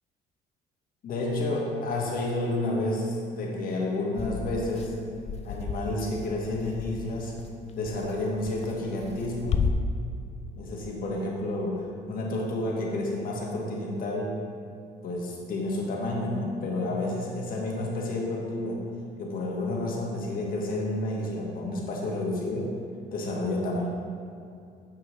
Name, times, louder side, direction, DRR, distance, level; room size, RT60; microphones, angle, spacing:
voice 1, 1.0-5.0 5.4-7.4 7.7-9.6 10.5-14.4 15.0-18.8 19.2-22.7 23.1-23.9, left 2 dB, 55° left, -2 dB, 1.6 m, -30 dB
sound 1, 4.2-9.7, left 6 dB, 40° left, 0.4 m, -33 dB
8.9 x 6.2 x 3.1 m, 2.4 s
cardioid pair, 110°, 17 cm